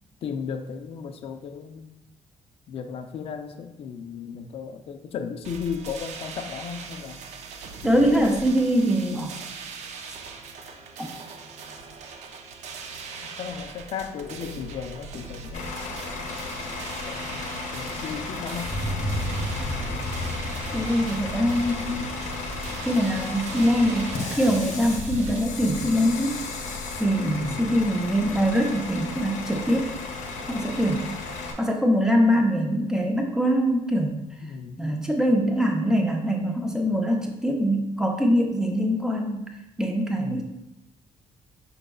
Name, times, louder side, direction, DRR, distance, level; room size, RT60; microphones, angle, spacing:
voice 1, 0.2-2.0 2.7-7.2 7.8-8.6 13.2-15.7 17.1-17.4 17.7-18.7 27.4-27.7 34.4-35.0 40.1-40.4, left 6 dB, 50° left, 7 dB, 0.4 m, -35 dB
sound 1, 5.4-25.4, right 4 dB, 70° right, 0.5 m, -41 dB
voice 2, 7.8-9.4 11.0-11.1 20.7-22.1 22.8-26.4 27.0-29.9 30.5-31.1 31.6-34.2 34.8-39.5 39.8-40.4, equal, 5° right, 1 dB, 0.6 m, -23 dB
Bus / Idling, 15.5-31.5, left 3 dB, 85° left, 0.8 m, -34 dB
Thunder, 18.4-28.6, equal, 20° left, 1.0 m, -36 dB
5.0 x 4.5 x 2.3 m, 0.92 s
cardioid pair, 155°, 12 cm